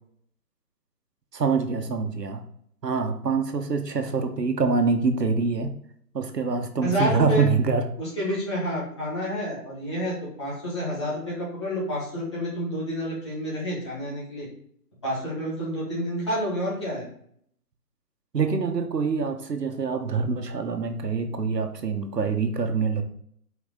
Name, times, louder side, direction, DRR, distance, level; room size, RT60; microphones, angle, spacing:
voice 1, 1.3-2.4 2.8-5.7 6.1-7.8 18.3-23.0, right 4 dB, 85° right, 6 dB, 1.4 m, -25 dB
voice 2, 6.8-7.4 8.0-14.5 15.0-17.0, equal, 20° left, -8 dB, 1.9 m, -29 dB
6.3 x 5.2 x 3.9 m, 0.65 s
hypercardioid pair, 180°, 47 cm